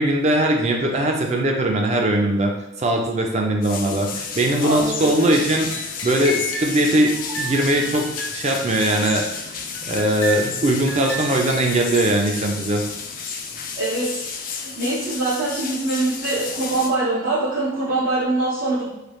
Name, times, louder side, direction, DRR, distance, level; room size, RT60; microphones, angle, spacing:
voice 1, 0.0-2.5 2.8-9.2 9.9-12.8, right 1 dB, 35° right, 2 dB, 0.4 m, -20 dB
sound 1, 3.6-16.9, left 5 dB, 40° left, 0.3 m, -32 dB
voice 2, 4.6-5.4 13.8-18.9, right 2 dB, 85° right, -8 dB, 0.8 m, -24 dB
sound 2, 5.6-6.9 7.3-9.4 9.7-12.4, equal, 90° left, 0.8 m, -33 dB
3.3 x 2.3 x 3.0 m, 1.0 s
head